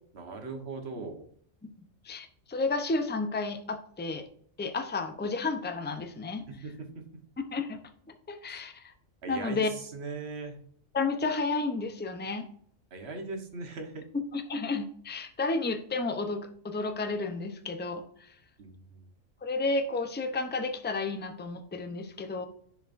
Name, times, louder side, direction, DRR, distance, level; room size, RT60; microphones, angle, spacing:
voice 1, 0.1-1.2 6.5-7.0 8.5-8.6 9.2-10.6 12.9-14.0 18.6-19.0, right 3 dB, 55° right, 4 dB, 1.4 m, -39 dB
voice 2, 2.0-4.3 4.6-6.4 7.5-7.8 8.3-8.9 9.3-9.7 10.9-12.5 14.3-18.3 19.4-22.5, left 3 dB, 15° left, 7 dB, 0.4 m, -32 dB
10.5 x 4.8 x 2.5 m, 0.62 s
omnidirectional pair, 1.3 m